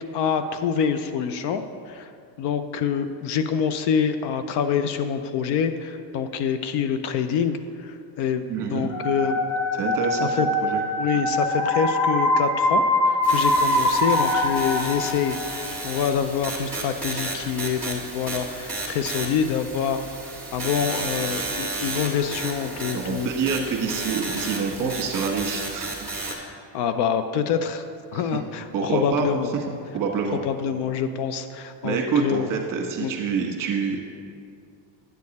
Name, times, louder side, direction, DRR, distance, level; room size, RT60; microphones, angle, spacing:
voice 1, 0.1-2.1 2.4-8.4 8.7-9.4 10.2-10.5 11.0-23.3 24.8-24.9 26.3-27.8 28.1-29.5 30.4-32.5 33.0-33.1, left 7 dB, 55° left, 9 dB, 0.5 m, -26 dB
voice 2, 8.5-8.9 9.7-10.8 11.1-11.2 22.9-26.1 28.1-28.4 28.7-29.3 29.7-30.4 31.8-34.0, right 5 dB, 40° right, 1 dB, 1.4 m, -27 dB
sound 1, 8.9-15.7, left 1 dB, 35° left, 1.0 m, -23 dB
sound 2, 13.2-26.3, right 2 dB, 5° left, 1.6 m, -33 dB
9.4 x 6.6 x 4.1 m, 2.4 s
cardioid pair, 125°, 49 cm